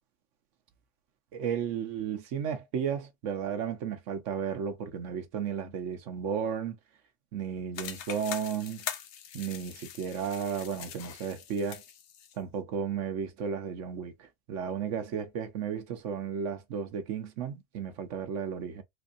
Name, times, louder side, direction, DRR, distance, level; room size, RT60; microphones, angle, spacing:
voice 1, 1.3-6.8 7.3-8.8 9.3-11.8 12.4-18.8, right 7 dB, 80° right, 1.1 m, -34 dB
sound 1, 7.7-12.4, left 9 dB, 70° left, 0.9 m, -42 dB
4.0 x 2.6 x 2.4 m
omnidirectional pair, 1.3 m